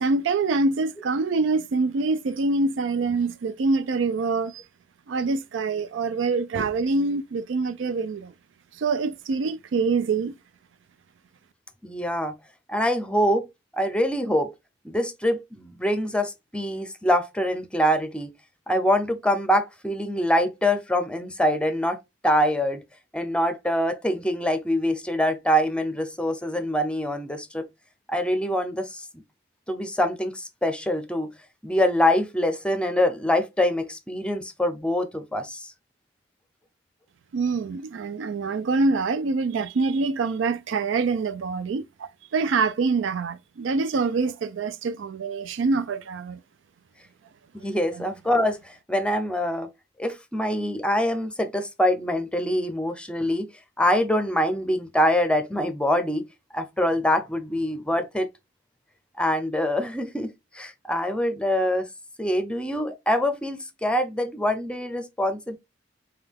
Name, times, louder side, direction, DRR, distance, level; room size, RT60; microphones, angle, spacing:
voice 1, 0.0-4.6 5.1-8.3 8.8-10.3 37.3-46.4 47.9-48.0, right 4 dB, 75° right, 0.4 m, -25 dB
voice 2, 11.8-12.3 12.7-13.5 13.8-14.5 14.8-18.3 18.7-22.0 22.2-22.8 23.1-27.7 28.1-29.0 29.7-31.3 31.6-35.7 47.6-49.7 50.0-53.5 53.8-56.2 56.5-58.3 59.2-61.9 62.2-65.6, left 1 dB, 5° left, 0.6 m, -24 dB
5.3 x 2.3 x 3.4 m
head